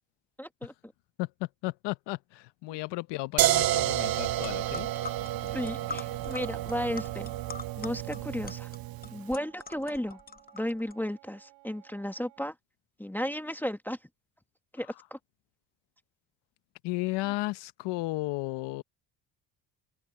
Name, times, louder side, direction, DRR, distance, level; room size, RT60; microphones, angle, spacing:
voice 1, 0.4-0.7 2.7-2.8 5.4-7.3 7.8-8.7 9.1-10.2 10.5-12.5 13.0-14.0 14.7-15.2, equal, 5° left, 1.6 m, -34 dB
voice 2, 1.2-4.9 16.8-18.8, left 21 dB, 80° left, 1.0 m, -34 dB
sound 1, 3.4-9.2, right 14 dB, 60° right, 0.9 m, -30 dB
sound 2, 4.1-4.2 4.4-10.9, left 4 dB, 20° left, 1.1 m, -43 dB
Wind instrument woodwind instrument, 7.9-12.5, right 24 dB, 85° right, 6.5 m, -58 dB
open air
supercardioid pair, 85°, 41 cm